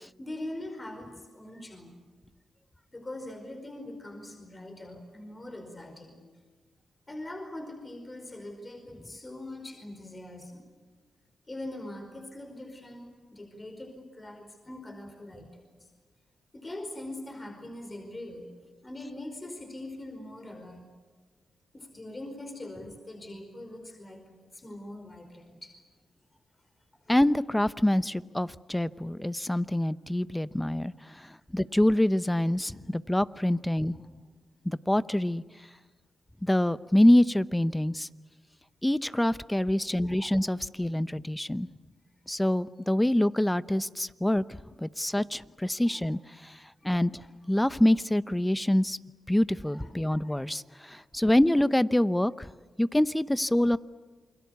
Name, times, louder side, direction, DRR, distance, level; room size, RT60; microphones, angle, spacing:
voice 1, 0.2-1.9 2.9-6.2 7.1-10.6 11.5-15.9 16.5-18.5 18.8-20.9 21.7-24.2 24.5-25.7 40.0-40.3 40.8-41.0 45.8-46.1 46.8-46.9 49.7-50.5 51.1-51.2, left 1 dB, 30° left, 4 dB, 4.9 m, -42 dB
voice 2, 27.1-34.0 34.6-35.4 36.4-38.1 38.8-41.7 42.3-44.4 44.8-46.6 46.8-49.0 49.3-52.5 52.8-53.8, left 1 dB, 10° left, 16 dB, 0.8 m, -26 dB
28.5 x 22.0 x 8.3 m, 1.4 s
supercardioid pair, 50°, 0 cm